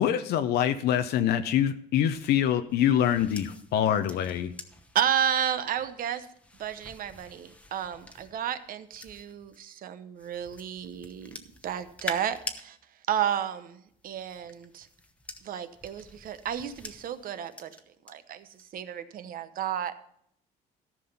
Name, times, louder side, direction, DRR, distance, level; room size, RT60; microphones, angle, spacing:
voice 1, 0.0-4.5, left 10 dB, 75° left, 8 dB, 0.6 m, -25 dB
sound 1, 2.0-9.6 10.2-12.6 13.9-18.1 18.5-18.8, left 2 dB, 10° left, 1.0 m, -46 dB
voice 2, 4.9-6.3 6.6-11.4 11.6-12.8 13.1-14.9 15.4-17.7 18.1-19.9, right 9 dB, 55° right, 12 dB, 0.9 m, -32 dB
14.0 x 6.1 x 5.5 m, 0.70 s
cardioid pair, 110°, 17 cm